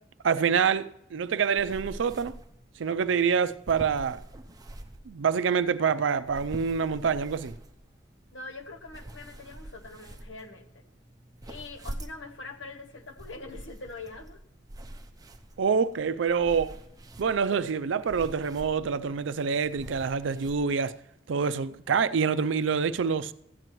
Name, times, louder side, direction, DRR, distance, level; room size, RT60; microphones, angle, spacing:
voice 1, 0.2-2.3 2.8-4.2 5.1-7.6 15.6-16.8 17.2-20.9 21.3-23.3, right 6 dB, 85° right, 0.4 m, -26 dB
sound 1, 1.6-20.6, right 1 dB, 20° right, 0.6 m, -46 dB
voice 2, 8.3-10.8 11.4-14.4, left 3 dB, 85° left, 1.1 m, -43 dB
15.0 x 9.2 x 3.1 m
head